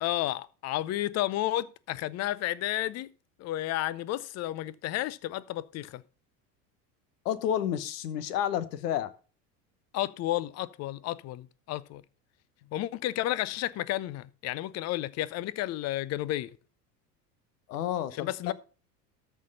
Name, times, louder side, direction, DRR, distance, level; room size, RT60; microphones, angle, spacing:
voice 1, 0.0-3.1 3.4-6.0 9.9-12.0 12.7-16.5 18.1-18.5, left 15 dB, 35° left, 0.6 m, -32 dB
voice 2, 7.2-9.1 17.7-18.5, left 10 dB, 70° left, 1.1 m, -30 dB
13.5 x 4.5 x 5.3 m
hypercardioid pair, 75°, 49 cm